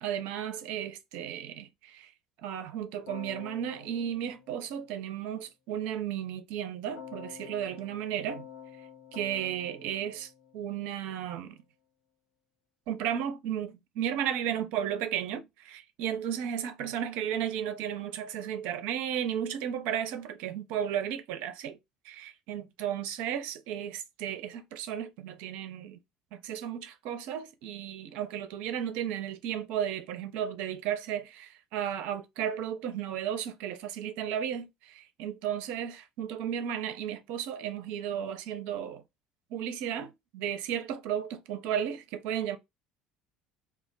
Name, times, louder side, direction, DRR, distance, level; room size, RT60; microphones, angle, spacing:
voice 1, 0.0-2.1 2.4-8.5 9.1-11.6 12.9-21.8 22.0-26.0 26.3-39.0 39.5-42.6, right 9 dB, 60° right, 0.5 m, -34 dB
Keyboard (musical), 3.1-5.4 7.0-11.2, left 8 dB, 80° left, 1.0 m, -49 dB
2.3 x 2.1 x 3.8 m
figure-of-eight pair, 65°, 3 cm